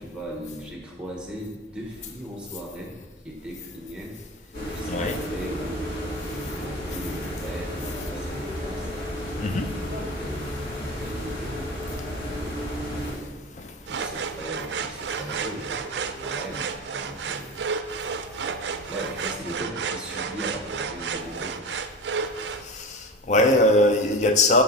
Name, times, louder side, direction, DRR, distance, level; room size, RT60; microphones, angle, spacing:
voice 1, 0.0-3.0 3.2-8.9 9.7-12.0 12.9-13.4 13.9-17.7 18.9-21.6, equal, 5° right, 0 dB, 0.9 m, -38 dB
sound 1, 4.5-13.1, equal, 60° left, 1.8 m, -32 dB
voice 2, 4.9-5.2 9.4-9.7 13.6-13.7 22.6-24.6, left 1 dB, 40° left, 7 dB, 0.5 m, -21 dB
sound 2, 13.9-22.6, right 5 dB, 70° right, 0.4 m, -32 dB
7.3 x 3.7 x 4.0 m, 1.3 s
head